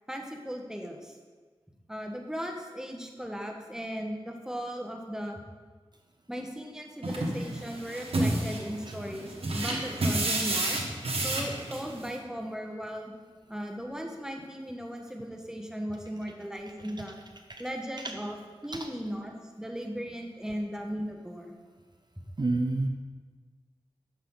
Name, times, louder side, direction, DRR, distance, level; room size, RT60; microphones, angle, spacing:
voice 1, 0.1-1.2 1.9-5.4 6.3-10.8 11.2-13.1 13.5-17.2 17.6-18.3 18.6-21.5, equal, 5° right, 2 dB, 1.4 m, -37 dB
sound 1, 7.0-12.1, right 2 dB, 85° right, 1.2 m, -30 dB
voice 2, 22.4-22.9, right 2 dB, 50° right, 4 dB, 0.6 m, -28 dB
10.5 x 6.6 x 3.9 m, 1.4 s
cardioid pair, 40°, 10 cm